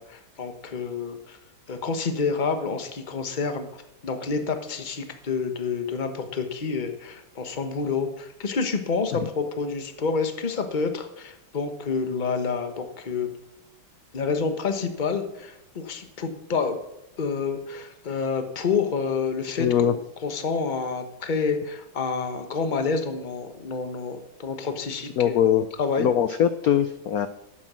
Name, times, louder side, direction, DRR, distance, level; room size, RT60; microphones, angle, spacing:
voice 1, 0.0-1.4 1.7-13.3 14.1-16.8 17.2-19.7 20.2-25.4 25.8-26.1, left 5 dB, 30° left, 7 dB, 0.9 m, -28 dB
voice 2, 19.6-19.9 25.2-25.7 26.0-27.3, left 9 dB, 85° left, 11 dB, 0.8 m, -21 dB
11.5 x 8.7 x 6.2 m, 0.86 s
omnidirectional pair, 2.3 m